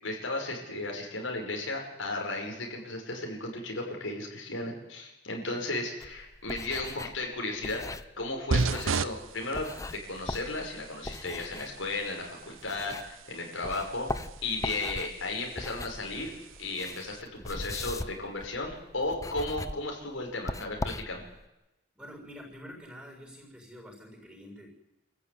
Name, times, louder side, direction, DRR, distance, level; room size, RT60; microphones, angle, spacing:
voice 1, 0.0-7.8 8.2-14.1 14.4-16.3 16.6-21.2, left 2 dB, 80° left, 1 dB, 6.0 m, -35 dB
sound 1, 6.0-13.3 13.6-21.5, left 2 dB, 15° left, 0.7 m, -40 dB
sound 2, 8.5-17.2, right 4 dB, 85° right, 0.8 m, -37 dB
voice 2, 21.9-24.7, equal, 5° right, 1 dB, 6.7 m, -47 dB
28.0 x 15.0 x 9.7 m, 0.96 s
head